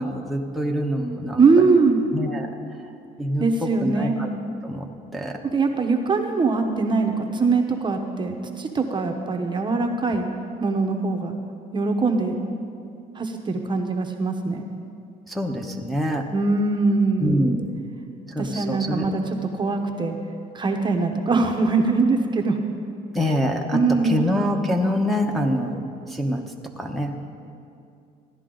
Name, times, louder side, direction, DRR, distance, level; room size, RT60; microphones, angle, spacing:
voice 1, 0.0-1.4 2.1-2.5 3.2-4.3 4.6-4.8 5.1-5.4 15.3-16.2 17.2-17.6 18.3-19.1 23.1-23.8 24.0-25.8 26.1-26.4 26.8-27.3, equal, ahead, 0 dB, 1.0 m, -25 dB
voice 2, 1.4-2.0 3.4-4.1 5.4-10.3 10.6-11.4 11.7-12.4 13.1-14.6 16.3-17.5 18.4-20.2 20.5-22.6 23.7-24.2, right 4 dB, 25° right, 4 dB, 0.9 m, -22 dB
15.5 x 11.0 x 3.9 m, 2.5 s
cardioid pair, 110°, 17 cm